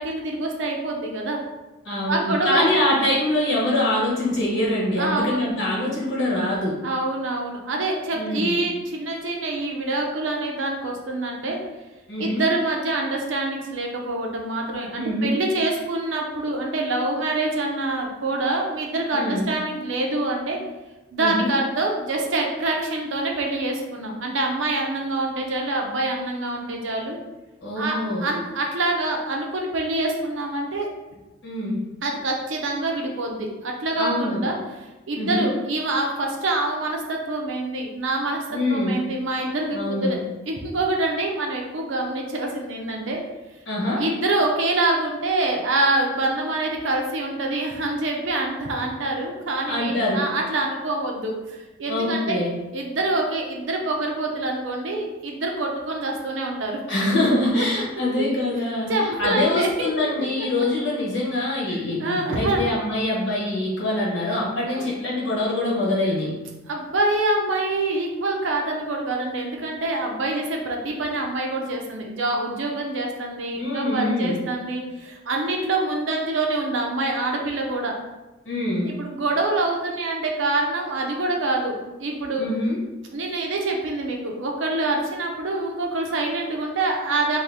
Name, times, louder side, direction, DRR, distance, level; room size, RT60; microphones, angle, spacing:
voice 1, 0.0-1.4 2.1-3.0 5.0-5.5 6.8-11.6 12.2-20.6 21.1-27.2 27.8-30.9 32.0-34.5 35.1-40.2 40.5-43.2 44.0-52.4 52.7-56.8 57.6-57.7 58.9-60.1 61.7-62.7 64.7-64.9 66.7-78.0 78.8-82.4 83.1-87.4, right 2 dB, 75° right, 1 dB, 0.6 m, -26 dB
voice 2, 1.8-6.8 8.1-8.6 12.1-12.5 14.9-15.4 19.1-19.5 21.2-21.5 27.6-28.3 31.4-31.9 34.0-34.5 35.1-35.5 38.5-39.0 39.7-40.2 43.7-44.0 49.7-50.3 51.9-52.5 56.9-66.3 73.6-74.4 78.4-78.9 82.4-82.8, left 1 dB, 70° left, -5 dB, 1.1 m, -24 dB
2.7 x 2.6 x 3.4 m, 1.1 s
head